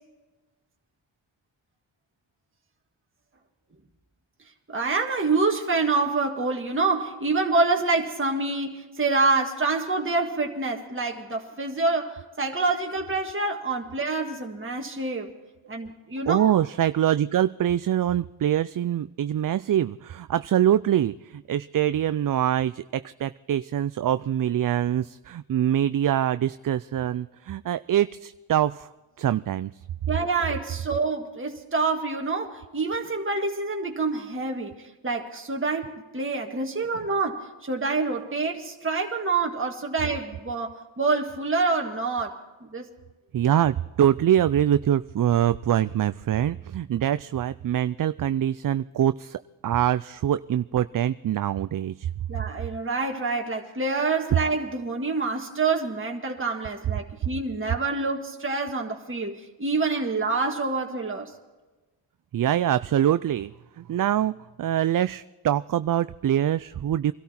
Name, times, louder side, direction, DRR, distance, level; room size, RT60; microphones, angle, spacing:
voice 1, 4.7-15.3 15.7-16.5 30.1-34.7 35.0-42.4 42.7-42.9 52.3-61.3, right 3 dB, 25° right, 1.8 m, -27 dB
voice 2, 16.3-28.9 29.2-29.7 43.3-52.1 62.3-67.1, right 11 dB, 45° right, 0.4 m, -24 dB
23.0 x 13.0 x 4.3 m
cardioid pair, 55°, 49 cm